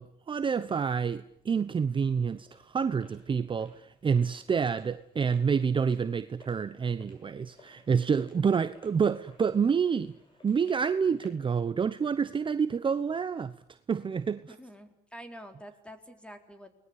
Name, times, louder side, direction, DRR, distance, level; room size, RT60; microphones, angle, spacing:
voice 1, 0.0-10.1 10.4-13.5 13.9-14.5, right 6 dB, 30° right, 1.0 m, -28 dB
sound 1, 1.3-11.5, left 2 dB, 30° left, 7.7 m, -60 dB
voice 2, 14.5-16.7, equal, 5° left, 4.3 m, -47 dB
29.5 x 20.5 x 8.4 m
cardioid pair, 110°, 17 cm